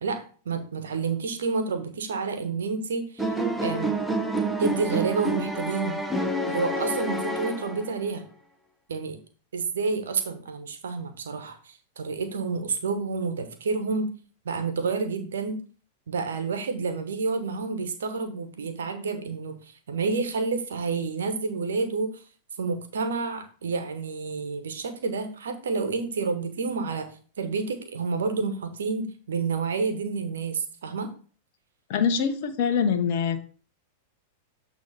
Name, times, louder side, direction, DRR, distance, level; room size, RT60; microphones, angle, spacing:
voice 1, 0.0-3.3 3.6-3.9 4.6-6.0 6.5-8.2 8.9-9.2 9.5-14.2 14.4-15.6 16.1-22.2 22.6-27.1 27.4-31.1, right 4 dB, 80° right, 9 dB, 1.0 m, -29 dB
sound 1, 3.2-8.1, right 1 dB, ahead, 0.9 m, -28 dB
voice 2, 31.9-33.4, left 6 dB, 60° left, 7 dB, 1.0 m, -24 dB
8.0 x 3.1 x 5.7 m, 0.40 s
hypercardioid pair, 105°, 0 cm